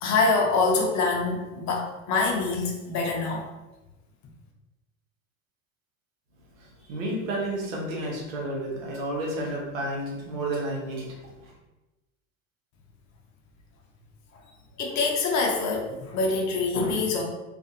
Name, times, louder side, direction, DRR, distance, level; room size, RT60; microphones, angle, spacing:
voice 1, 0.0-3.4 14.8-17.2, left 3 dB, 45° left, 0 dB, 0.7 m, -25 dB
voice 2, 6.6-11.5, right 1 dB, 90° right, -2 dB, 0.9 m, -31 dB
2.4 x 2.4 x 2.7 m, 1.1 s
hypercardioid pair, 95°, 39 cm